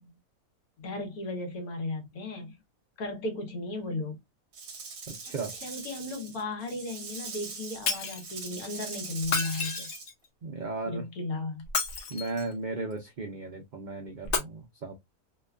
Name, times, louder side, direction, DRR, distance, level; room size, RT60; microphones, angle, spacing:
voice 1, 0.8-2.6 3.0-4.2 5.3-9.9 10.9-11.6, left 2 dB, 75° left, 1.4 m, -35 dB
Rattle / Rattle (instrument), 4.5-10.1, right 4 dB, 55° right, 0.9 m, -42 dB
Shatter, 7.9-8.3 9.2-10.2 11.6-12.5 14.2-14.4, left 4 dB, 60° left, 0.9 m, -31 dB
voice 2, 10.4-11.0 12.1-14.9, right 3 dB, 85° right, 0.4 m, -35 dB
3.0 x 2.2 x 2.3 m
omnidirectional pair, 1.5 m